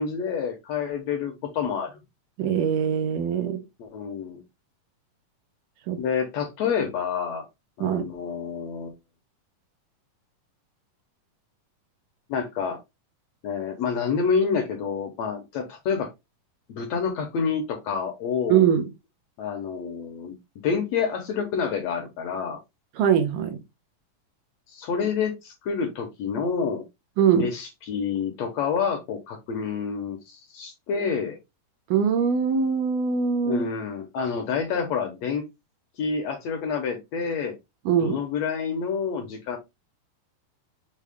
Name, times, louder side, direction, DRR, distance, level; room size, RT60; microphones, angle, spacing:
voice 1, 0.0-1.9 3.8-4.4 6.0-7.5 7.8-8.9 12.3-12.8 13.4-16.1 16.7-18.7 19.4-20.3 20.6-22.6 24.7-26.8 27.3-31.4 33.4-35.4 36.0-37.5 38.0-39.6, left 6 dB, 65° left, 1.8 m, -28 dB
voice 2, 2.4-3.6 5.9-6.0 7.8-8.1 18.5-18.9 23.0-23.6 27.2-27.5 31.9-33.7 37.9-38.2, right 7 dB, 80° right, 2.4 m, -22 dB
6.5 x 2.3 x 3.5 m
omnidirectional pair, 3.8 m